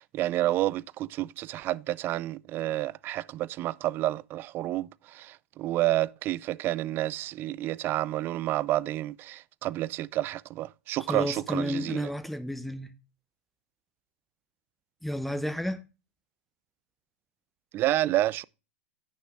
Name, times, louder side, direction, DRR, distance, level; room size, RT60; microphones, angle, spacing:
voice 1, 0.0-12.1 17.7-18.4, right 15 dB, 30° right, 0.4 m, -29 dB
voice 2, 11.1-12.9 15.0-15.8, left 1 dB, ahead, 1.0 m, -31 dB
16.5 x 6.5 x 2.4 m
hypercardioid pair, 105°, 7 cm